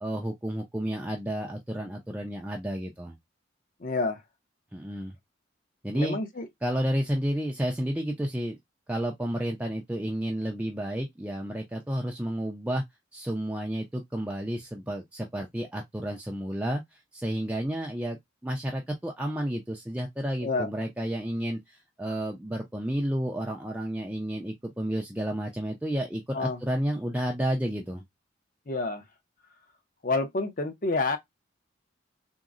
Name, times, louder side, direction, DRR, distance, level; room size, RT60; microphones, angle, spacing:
voice 1, 0.0-3.2 4.7-5.2 5.8-6.2 6.6-8.6 8.9-12.8 13.1-28.0, equal, 5° right, 0.3 m, -31 dB
voice 2, 3.8-4.2 5.9-6.5 20.4-20.7 26.3-26.6 28.7-29.0 30.0-31.2, left 3 dB, 45° left, 0.6 m, -28 dB
3.8 x 2.0 x 2.4 m
head